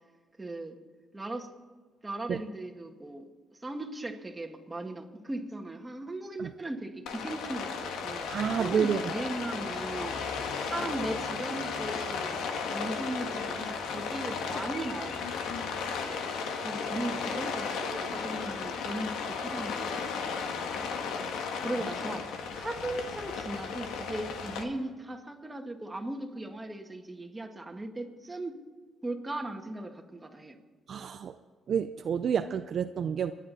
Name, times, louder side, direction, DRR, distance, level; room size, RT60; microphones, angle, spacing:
voice 1, 0.4-0.8 1.1-1.5 2.0-3.3 3.6-10.2 10.6-16.3 16.6-20.9 21.6-28.6 29.0-30.6, right 2 dB, 15° right, 3 dB, 1.9 m, -38 dB
Rain, 7.1-24.6, left 5 dB, 90° left, 1.6 m, -35 dB
voice 2, 8.3-9.0 30.9-31.3 31.7-33.3, right 7 dB, 55° right, 9 dB, 0.5 m, -29 dB
26.0 x 10.5 x 4.2 m, 1.5 s
cardioid pair, 90°, 0 cm